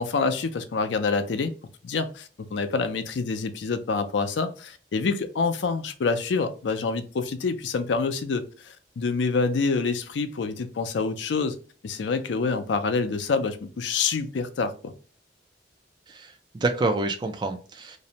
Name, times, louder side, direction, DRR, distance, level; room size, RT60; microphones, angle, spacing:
voice 1, 0.0-1.5 1.8-11.6 11.8-14.9, left 4 dB, 80° left, 0.4 m, -27 dB
voice 2, 16.1-18.0, right 2 dB, 25° right, 0.3 m, -28 dB
2.6 x 2.1 x 2.7 m
head